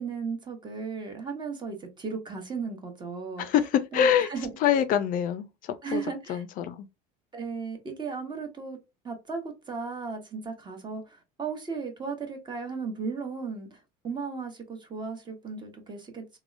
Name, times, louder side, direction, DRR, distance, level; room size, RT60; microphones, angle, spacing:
voice 1, 0.0-3.5 3.9-4.5 5.8-6.4 7.3-8.8 9.0-13.8 14.0-16.4, right 5 dB, 25° right, 1.0 m, -35 dB
voice 2, 3.4-4.3 4.6-6.0 6.3-6.9, left 9 dB, 50° left, 0.4 m, -25 dB
3.4 x 2.1 x 2.4 m
supercardioid pair, 110°, 18 cm